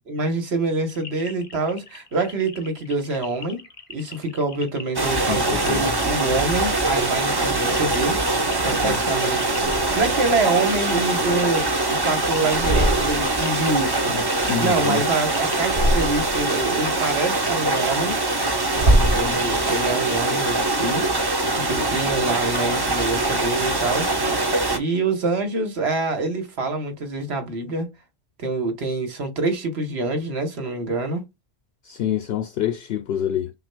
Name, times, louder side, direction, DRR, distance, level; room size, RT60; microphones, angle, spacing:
voice 1, 0.0-3.6 3.9-14.2 14.6-18.2 19.1-21.0 21.5-24.1 24.7-27.9 28.4-31.2, right 3 dB, 65° right, 1.3 m, -26 dB
sound 1, 0.9-16.1, left 4 dB, 30° left, 0.8 m, -43 dB
sound 2, 4.9-24.8, right 2 dB, 25° right, 0.7 m, -23 dB
voice 2, 5.3-5.8 8.8-9.0 14.1-15.0 18.9-19.4 31.8-33.5, left 10 dB, 65° left, 0.8 m, -27 dB
sound 3, 7.5-8.7 9.4-10.3 10.8-12.1 12.4-13.5 13.7-15.1 15.5-16.6 17.0-19.8, right 1 dB, 45° right, 1.3 m, -26 dB
5.9 x 2.4 x 2.2 m
omnidirectional pair, 1.2 m